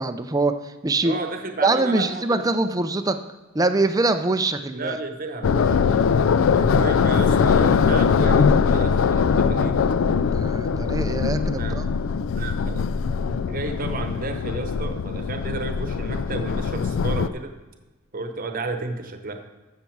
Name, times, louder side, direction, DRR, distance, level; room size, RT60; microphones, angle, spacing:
voice 1, 0.0-1.2 1.6-3.2 3.5-5.0 10.3-11.9, right 2 dB, 15° right, 9 dB, 0.4 m, -23 dB
voice 2, 1.0-2.4 4.7-5.8 6.5-9.8 11.6-11.8 12.4-12.8 13.2-17.5 18.1-19.4, right 3 dB, 40° right, 6 dB, 0.9 m, -32 dB
sound 1, 5.4-17.3, left 6 dB, 65° left, 0.3 m, -21 dB
14.0 x 6.7 x 4.6 m, 1.2 s
head